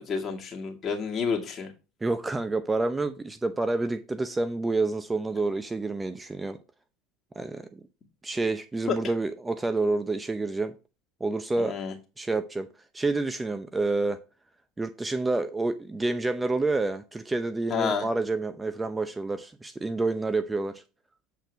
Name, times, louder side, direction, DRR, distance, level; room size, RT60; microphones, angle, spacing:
voice 1, 0.0-1.7 8.9-9.0 11.6-11.9 17.7-18.1, left 6 dB, 35° left, 2.3 m, -29 dB
voice 2, 2.0-6.6 7.4-7.8 8.2-10.7 11.2-11.8 12.2-12.7 12.9-14.2 14.8-20.8, right 3 dB, 15° right, 0.7 m, -28 dB
8.1 x 4.4 x 4.7 m
hypercardioid pair, 90°, 0 cm